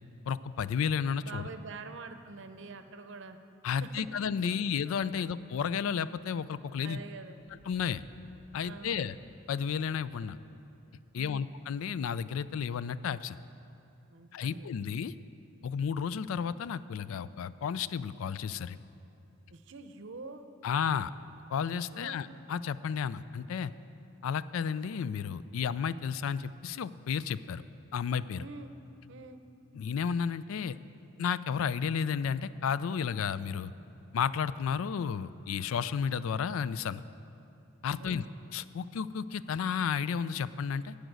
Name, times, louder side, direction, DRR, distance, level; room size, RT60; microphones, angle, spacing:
voice 1, 0.3-1.5 3.6-7.0 7.7-8.0 8.5-9.1 9.5-10.4 11.1-13.4 14.3-15.1 15.6-18.8 20.6-21.1 21.5-23.7 24.2-27.6 27.9-28.4 29.7-30.8 31.2-33.7 34.1-37.0 37.8-38.2 38.5-41.0, left 7 dB, 80° left, 16 dB, 0.3 m, -32 dB
voice 2, 1.2-3.4 3.8-4.1 5.1-5.3 6.8-7.4 8.6-9.1 11.1-11.4 14.1-14.7 19.5-20.4 21.9-22.2 28.4-28.7 29.1-29.4 38.0-38.3, right 3 dB, 60° right, 8 dB, 0.7 m, -46 dB
sound 1, 7.4-12.0, equal, 55° left, 1.5 m, -60 dB
14.5 x 5.1 x 9.2 m, 2.7 s
head